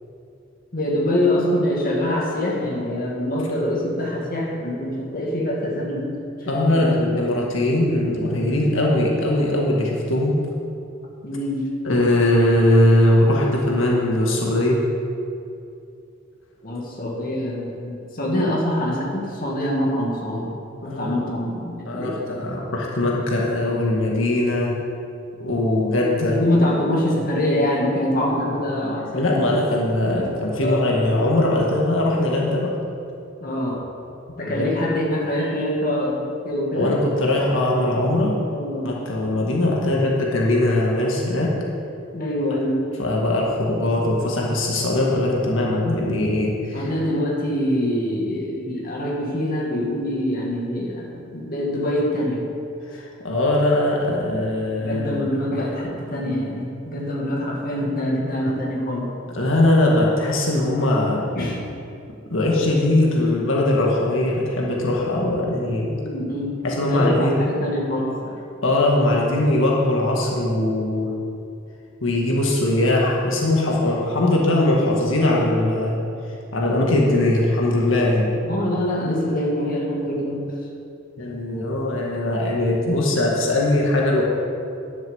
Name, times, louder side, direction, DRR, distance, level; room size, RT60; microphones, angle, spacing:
voice 1, 0.7-6.1 6.4-6.9 11.2-11.7 16.6-20.5 20.8-22.2 26.3-29.5 30.1-30.9 33.4-33.9 34.4-37.0 38.4-38.9 42.1-42.8 46.7-52.5 54.8-59.1 61.3-61.6 65.9-66.6 66.9-68.4 78.4-80.6, left 1 dB, 45° left, -3 dB, 2.1 m, -24 dB
voice 2, 6.5-10.4 11.8-14.8 20.8-21.1 21.9-24.7 25.4-26.4 29.1-32.7 34.4-34.7 36.7-38.4 38.8-41.5 43.0-46.9 52.9-55.3 59.3-61.2 62.3-65.9 66.6-67.3 68.6-71.1 72.0-76.0 76.5-78.3 81.2-84.2, left 1 dB, 80° left, -3 dB, 1.8 m, -20 dB
11.0 x 7.4 x 7.0 m, 2.6 s
head